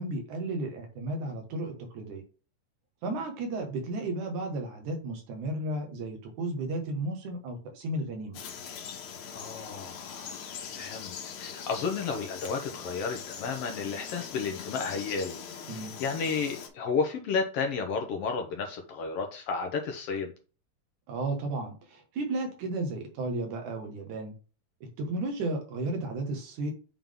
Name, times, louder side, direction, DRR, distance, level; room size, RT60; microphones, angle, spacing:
voice 1, 0.0-2.2 3.0-8.4 15.7-15.9 21.1-24.3 24.8-26.7, right 2 dB, 85° right, 2.9 m, -33 dB
Frog, 8.3-16.7, left 7 dB, 85° left, 2.5 m, -42 dB
voice 2, 9.3-10.5 10.7-15.4 15.7-20.3, left 5 dB, 65° left, 1.7 m, -32 dB
7.3 x 3.8 x 3.6 m
omnidirectional pair, 3.4 m